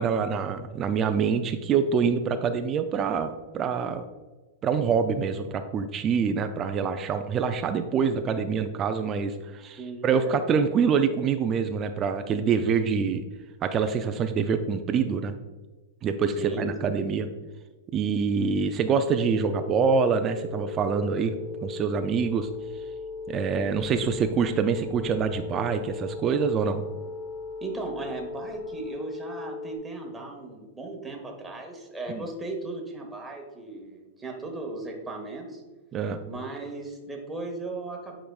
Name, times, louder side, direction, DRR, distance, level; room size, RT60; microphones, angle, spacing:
voice 1, 0.0-3.3 3.5-4.0 4.6-13.2 13.6-15.3 16.0-17.3 17.9-21.4 21.6-22.5 23.3-26.8 32.1-32.3 35.9-36.2, right 6 dB, 25° right, 8 dB, 0.3 m, -25 dB
voice 2, 9.8-10.4 16.4-16.9 27.6-35.6 36.3-38.1, right 3 dB, 5° right, 1 dB, 0.9 m, -37 dB
sound 1, 19.2-29.8, left 4 dB, 80° left, 1.5 m, -37 dB
9.0 x 4.9 x 2.3 m, 1.2 s
supercardioid pair, 160°, 0 cm